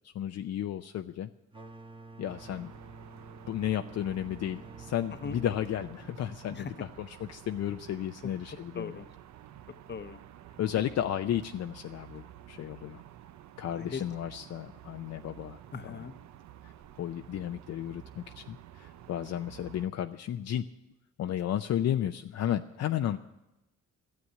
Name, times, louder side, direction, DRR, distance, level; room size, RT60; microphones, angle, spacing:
voice 1, 0.0-1.3 2.2-2.7 3.5-8.9 10.6-13.0 13.6-16.1 16.6-16.7 17.0-20.7 21.2-23.2, left 11 dB, 60° left, 7 dB, 0.6 m, -33 dB
sound 1, 1.5-7.0, right 2 dB, 15° right, 1.4 m, -50 dB
sound 2, 2.2-19.9, right 12 dB, 65° right, 0.7 m, -51 dB
voice 2, 8.7-9.1 9.9-10.2 13.7-14.0 15.7-16.1, left 5 dB, 35° left, 11 dB, 0.9 m, -39 dB
13.0 x 7.8 x 10.0 m, 0.96 s
cardioid pair, 90°, 30 cm